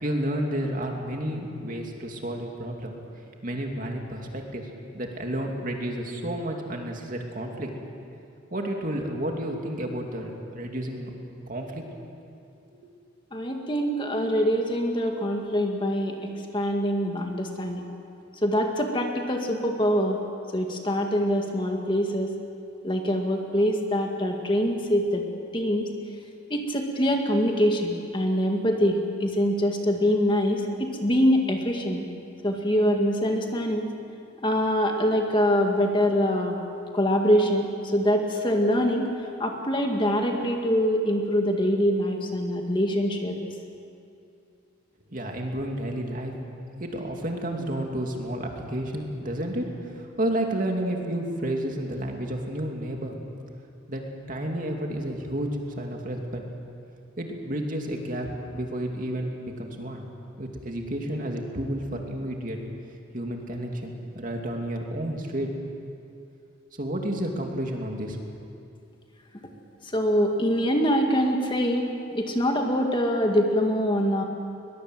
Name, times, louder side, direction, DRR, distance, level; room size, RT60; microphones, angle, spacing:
voice 1, 0.0-2.9 3.4-4.6 4.9-7.7 8.5-11.1 11.5-11.8 45.1-46.3 46.8-53.1 53.9-56.4 57.2-60.1 60.4-62.6 63.1-65.5 66.8-68.3, right 1 dB, 45° right, 2 dB, 2.7 m, -31 dB
voice 2, 13.3-17.8 18.4-20.2 20.5-22.3 22.8-25.2 25.5-25.9 26.5-32.1 32.4-33.9 34.4-36.6 36.9-39.1 39.4-43.4 69.9-74.2, equal, 25° left, 2 dB, 2.0 m, -24 dB
22.0 x 21.5 x 7.9 m, 2.6 s
head